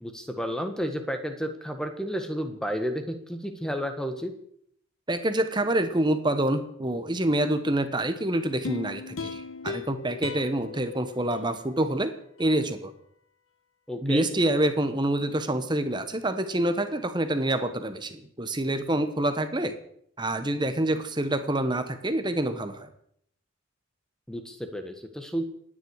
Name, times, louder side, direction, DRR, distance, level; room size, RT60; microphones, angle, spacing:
voice 1, 0.0-4.3 13.9-14.3 24.3-25.4, equal, 5° left, 6 dB, 1.5 m, -32 dB
voice 2, 5.1-12.1 12.4-12.9 14.0-19.7 20.2-22.9, right 1 dB, 20° right, 9 dB, 1.2 m, -27 dB
sound 1, 8.6-11.9 12.4-12.5, left 5 dB, 80° left, 1.0 m, -38 dB
26.5 x 10.0 x 4.8 m, 0.68 s
head